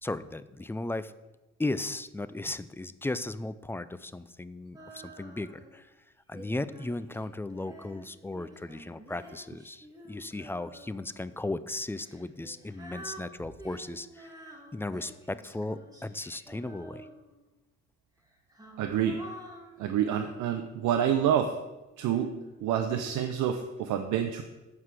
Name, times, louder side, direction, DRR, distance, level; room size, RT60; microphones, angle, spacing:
voice 1, 0.0-1.1 1.6-5.9 6.3-14.3 14.7-17.1, left 2 dB, 10° left, 14 dB, 0.3 m, -36 dB
Female singing, 4.7-5.8 6.3-11.1 11.9-17.5 18.2-21.4 22.1-23.2, right 1 dB, 10° right, 1.9 m, -49 dB
voice 2, 18.8-19.2 19.8-21.6 22.0-22.4 22.6-24.4, right 9 dB, 85° right, 6 dB, 0.7 m, -27 dB
8.1 x 4.8 x 7.3 m, 1.1 s
cardioid pair, 90°, 30 cm